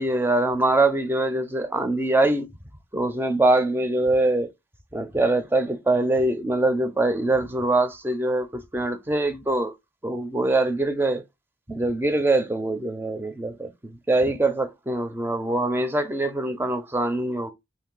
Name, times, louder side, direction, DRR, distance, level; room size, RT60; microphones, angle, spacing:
voice 1, 0.0-2.5 2.9-4.5 4.9-9.7 10.0-11.2 11.7-17.5, right 2 dB, 10° right, 0.5 m, -23 dB
2.6 x 2.6 x 3.8 m
head